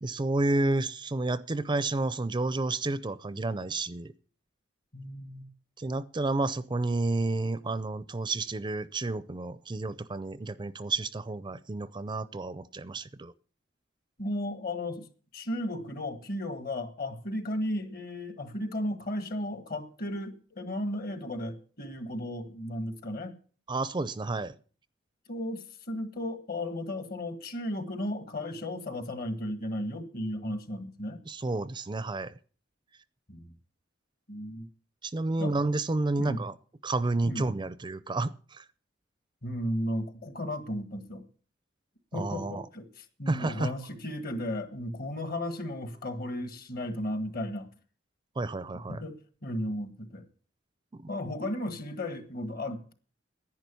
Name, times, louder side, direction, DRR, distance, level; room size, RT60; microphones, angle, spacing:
voice 1, 0.0-4.1 5.8-13.3 23.7-24.6 31.3-32.3 35.0-36.5 36.8-38.6 42.1-42.6 43.3-43.7 48.4-49.0 50.9-51.1, right 2 dB, 25° right, 0.5 m, -30 dB
voice 2, 4.9-5.5 14.2-15.1 15.3-23.4 25.3-31.2 33.3-33.5 34.3-34.7 35.4-35.6 36.2-36.4 37.2-37.4 39.4-41.3 42.1-47.7 48.9-50.3 51.1-52.9, left 1 dB, 50° left, 1.5 m, -35 dB
10.5 x 9.6 x 6.9 m
head